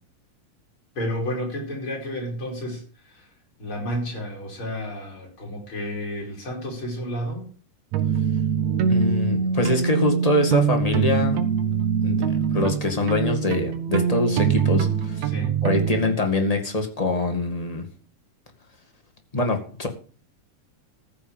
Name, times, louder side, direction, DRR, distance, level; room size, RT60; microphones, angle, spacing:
voice 1, 1.0-3.3 3.6-7.5 15.3-15.5, equal, 35° left, 0 dB, 5.4 m, -31 dB
sound 1, 7.9-16.0, right 7 dB, 65° right, 2.5 m, -23 dB
voice 2, 8.9-11.4 12.0-15.3 15.6-17.9 19.3-19.9, left 2 dB, 15° left, 3 dB, 1.5 m, -24 dB
14.5 x 6.6 x 7.4 m, 0.40 s
omnidirectional pair, 3.9 m